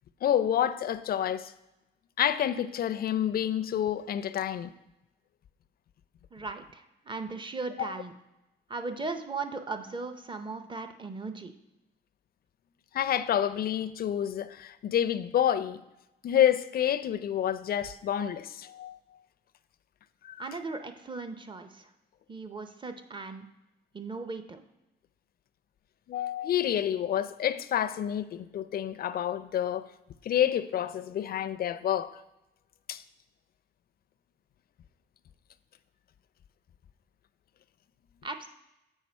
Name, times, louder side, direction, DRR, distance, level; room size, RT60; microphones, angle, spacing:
voice 1, 0.2-1.5 2.2-4.7 7.8-7.9 12.9-15.8 16.2-19.0 20.2-20.4 26.1-29.9 30.2-32.1 32.9-33.0, left 10 dB, 50° left, 0.4 m, -28 dB
voice 2, 6.3-8.1 8.7-11.5 20.4-21.9 22.3-23.5 23.9-24.6 38.2-38.5, right 3 dB, 25° right, 0.6 m, -37 dB
7.3 x 4.9 x 4.3 m
cardioid pair, 90°, 20 cm